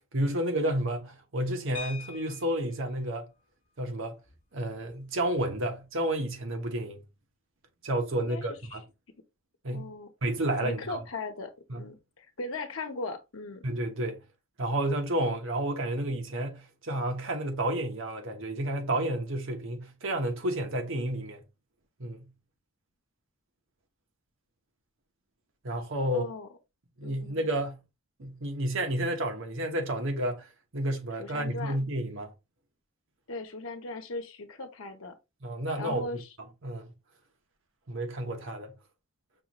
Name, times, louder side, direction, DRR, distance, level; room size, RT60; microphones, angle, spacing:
voice 1, 0.1-3.3 3.8-4.2 4.5-7.0 7.8-8.8 9.6-9.9 10.2-11.0 11.7-11.8 13.6-14.2 14.6-21.4 22.0-22.3 25.6-26.3 27.0-27.8 28.2-30.5 30.7-32.3 35.4-36.1 36.6-36.9 37.9-38.7, right 1 dB, 65° right, 1.0 m, -31 dB
sound 1, 1.7-2.8 4.3-4.4 4.7-4.9 5.3-5.6, left 6 dB, 35° left, 1.6 m, -43 dB
voice 2, 8.2-8.8 9.7-10.1 10.6-11.5 11.8-13.6 26.1-26.5 27.0-27.4 31.2-31.8 33.3-35.1 35.8-36.3, left 3 dB, 70° left, 0.9 m, -38 dB
5.8 x 2.5 x 2.9 m
head